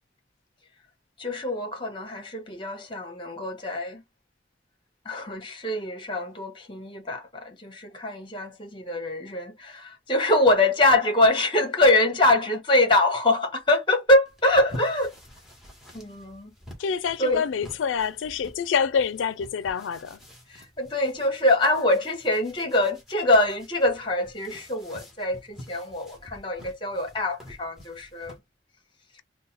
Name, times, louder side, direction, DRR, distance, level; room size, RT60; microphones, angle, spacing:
voice 1, 1.2-4.0 5.0-15.1 15.9-16.5 17.2-17.4 20.5-28.4, left 2 dB, 25° left, 1.1 m, -24 dB
sound 1, 14.2-28.4, left 1 dB, ahead, 1.2 m, -47 dB
voice 2, 16.8-20.2, left 6 dB, 90° left, 0.4 m, -27 dB
3.9 x 2.2 x 4.1 m
head